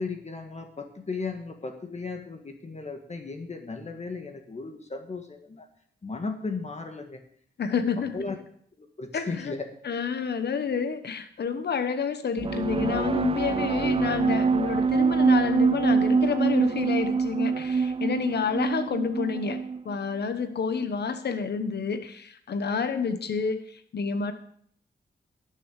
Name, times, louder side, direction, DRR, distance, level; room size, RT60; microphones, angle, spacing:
voice 1, 0.0-5.7 6.0-7.2 8.1-8.4 8.8-9.7, left 4 dB, 40° left, 5 dB, 1.7 m, -35 dB
voice 2, 7.6-8.3 9.1-9.5 9.8-24.3, left 6 dB, 65° left, 9 dB, 1.1 m, -29 dB
sound 1, 12.4-19.9, right 5 dB, 30° right, 0.5 m, -25 dB
11.0 x 6.8 x 6.5 m, 0.63 s
cardioid pair, 80°, 18 cm